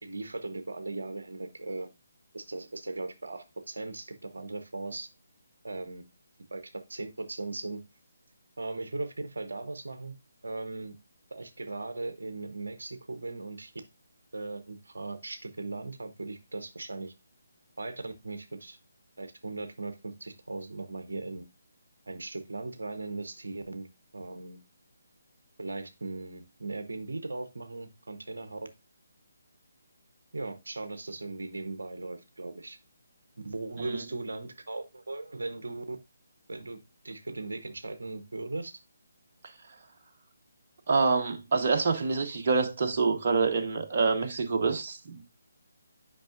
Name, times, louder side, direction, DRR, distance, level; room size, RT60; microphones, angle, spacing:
voice 1, 0.0-1.9 2.3-5.1 5.6-6.0 6.5-7.8 8.6-10.1 10.4-11.0 11.3-13.7 14.3-17.1 17.8-18.8 19.2-21.4 22.1-23.9 24.1-24.6 25.6-28.6 30.3-32.8 33.4-36.0 36.5-36.8 37.0-38.8, right 2 dB, 65° right, 0.9 m, -38 dB
voice 2, 40.9-45.2, right 4 dB, 40° right, 1.0 m, -26 dB
8.7 x 5.4 x 2.5 m
figure-of-eight pair, 145°, 0 cm